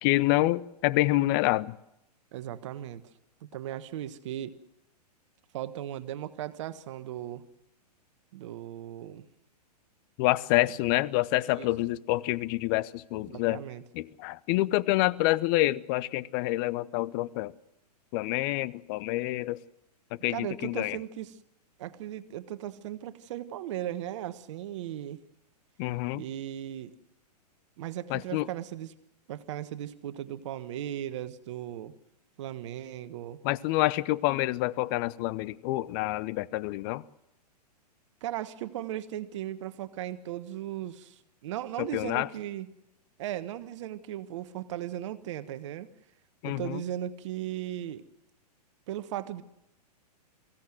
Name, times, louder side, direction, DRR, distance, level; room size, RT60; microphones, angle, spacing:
voice 1, 0.0-1.8 10.2-13.6 13.9-17.5 18.1-19.6 20.1-21.0 25.8-26.2 28.1-28.5 33.4-37.0 41.8-42.3 46.4-46.8, left 18 dB, 35° left, 20 dB, 0.7 m, -27 dB
voice 2, 2.3-3.0 3.4-4.6 5.5-7.4 8.3-9.2 11.5-11.7 13.3-13.8 20.3-21.4 21.8-25.2 26.1-26.9 27.8-28.9 29.3-31.9 32.4-33.4 38.2-42.7 43.2-45.9 46.4-48.0 48.9-49.4, right 12 dB, 45° right, 13 dB, 1.4 m, -37 dB
24.0 x 16.5 x 7.8 m, 0.85 s
figure-of-eight pair, 110°, 21 cm